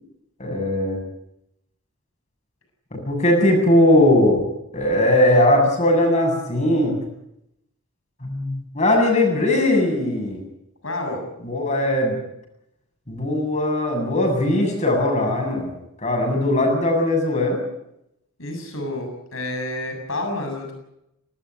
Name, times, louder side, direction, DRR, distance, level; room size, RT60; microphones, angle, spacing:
voice 1, 0.4-1.0 2.9-4.4 4.7-7.0 8.2-10.4 11.4-12.2 13.1-15.7 16.0-17.6, left 1 dB, 30° left, 2 dB, 7.9 m, -19 dB
voice 2, 10.8-11.2 18.4-20.7, left 2 dB, 70° left, 4 dB, 7.4 m, -29 dB
20.0 x 19.0 x 9.4 m, 0.82 s
head